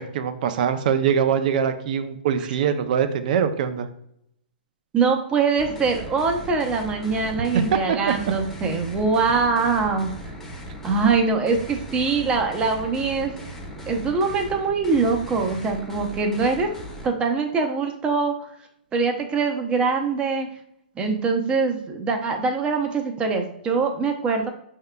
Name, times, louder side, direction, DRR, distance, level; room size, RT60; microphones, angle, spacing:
voice 1, 0.0-3.9 7.9-8.1, right 8 dB, 55° right, 10 dB, 0.5 m, -23 dB
voice 2, 4.9-10.1 10.8-13.3 13.9-16.7 17.0-18.3 18.9-20.5 21.0-24.5, right 4 dB, 20° right, 4 dB, 0.7 m, -23 dB
sound 1, 5.6-17.1, equal, 5° left, 0.9 m, -38 dB
5.3 x 3.6 x 2.3 m, 0.73 s
hypercardioid pair, 135°, 5 cm